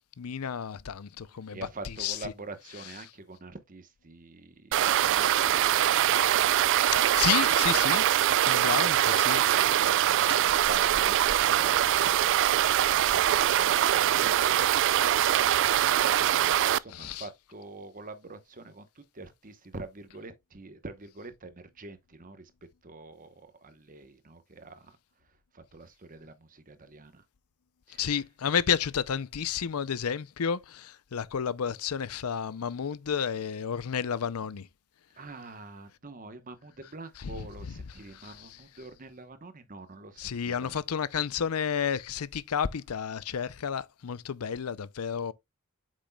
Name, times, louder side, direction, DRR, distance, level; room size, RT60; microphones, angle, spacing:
voice 1, 0.2-1.6 1.8-2.3 6.9-8.1 8.4-9.4 10.3-10.4 16.9-17.2 28.0-34.7 37.2-37.5 38.1-38.5 40.2-45.3, left 7 dB, 80° left, 0.5 m, -31 dB
voice 2, 1.5-6.0 8.5-8.9 9.3-14.8 15.4-22.5 22.8-25.0 25.5-27.2 27.9-28.2 35.1-40.8, right 2 dB, 40° right, 1.0 m, -46 dB
sound 1, 4.7-16.8, right 11 dB, 55° right, 0.3 m, -23 dB
8.2 x 6.2 x 2.3 m
head